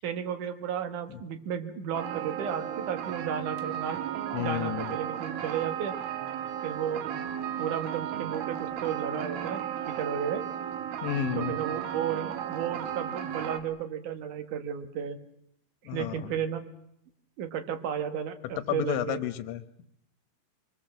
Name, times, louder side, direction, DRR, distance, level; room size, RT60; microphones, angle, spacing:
voice 1, 0.0-4.0 4.4-5.9 6.6-7.0 7.6-10.4 11.3-15.2 15.9-16.7 17.4-19.2, right 8 dB, 60° right, 7 dB, 2.3 m, -33 dB
sound 1, 1.9-13.6, right 10 dB, 85° right, 4.0 m, -34 dB
voice 2, 4.3-4.9 11.0-11.6 15.9-16.3 18.7-19.6, left 12 dB, 75° left, 10 dB, 3.3 m, -31 dB
24.5 x 24.0 x 7.5 m, 0.76 s
omnidirectional pair, 5.4 m